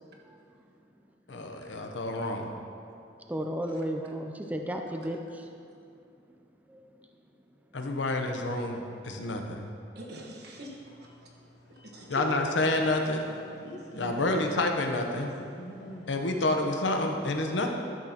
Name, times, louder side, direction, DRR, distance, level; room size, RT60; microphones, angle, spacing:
voice 1, 1.3-2.5 7.7-9.7 12.1-13.3 14.0-15.3 16.1-17.7, left 2 dB, 90° left, 4 dB, 0.8 m, -29 dB
voice 2, 3.3-5.4 6.7-6.9, equal, 10° right, 3 dB, 0.4 m, -34 dB
voice 3, 9.9-10.8 11.7-12.4 14.3-14.5, right 1 dB, 60° right, -1 dB, 1.3 m, -43 dB
sound 1, 10.6-16.6, equal, 65° left, 1.2 m, -48 dB
12.0 x 6.3 x 2.9 m, 2.7 s
head